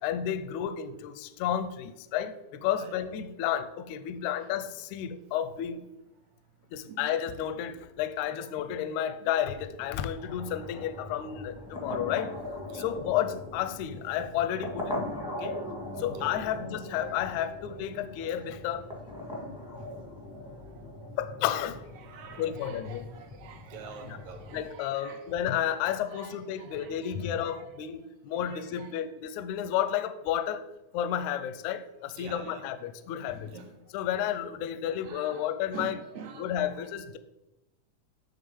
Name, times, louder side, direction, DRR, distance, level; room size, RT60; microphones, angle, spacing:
voice 1, 0.0-5.9 6.7-12.4 12.7-15.1 15.4-15.6 16.0-18.9 21.2-21.9 22.4-23.1 24.0-24.2 24.5-30.7 30.9-33.5 33.9-36.0 36.4-37.2, left 10 dB, 80° left, 1.8 m, -32 dB
sound 1, 9.7-24.7, left 1 dB, 5° right, 0.4 m, -40 dB
voice 2, 19.5-19.9 20.7-20.8 22.0-25.4 26.1-27.8 28.5-29.0 32.2-32.7 33.3-33.7 35.0-36.8, right 6 dB, 70° right, 2.2 m, -47 dB
9.0 x 4.0 x 7.0 m
omnidirectional pair, 3.7 m